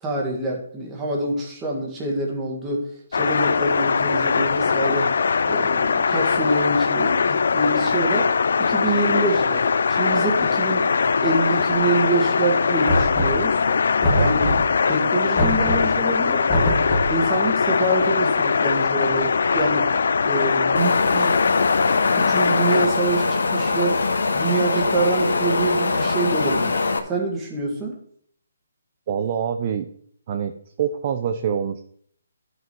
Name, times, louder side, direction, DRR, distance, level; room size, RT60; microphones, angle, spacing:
voice 1, 0.0-5.1 5.5-8.3 8.6-10.9 11.2-13.6 14.2-14.6 14.9-16.5 17.1-19.9 20.2-21.4 22.2-24.0 24.3-26.8 27.1-28.0, right 2 dB, 10° right, -2 dB, 1.8 m, -26 dB
sound 1, 3.1-22.9, left 5 dB, 60° left, 0.4 m, -21 dB
Knock, 12.9-13.6 14.0-14.8 15.4-16.0 16.5-17.2, equal, 5° left, 1.5 m, -23 dB
Wind, 20.8-27.0, left 3 dB, 85° left, 1.3 m, -22 dB
voice 2, 29.1-29.9 30.3-30.5 30.8-31.8, right 8 dB, 30° right, 8 dB, 0.5 m, -25 dB
11.5 x 6.3 x 4.5 m, 0.62 s
hypercardioid pair, 175°, 0 cm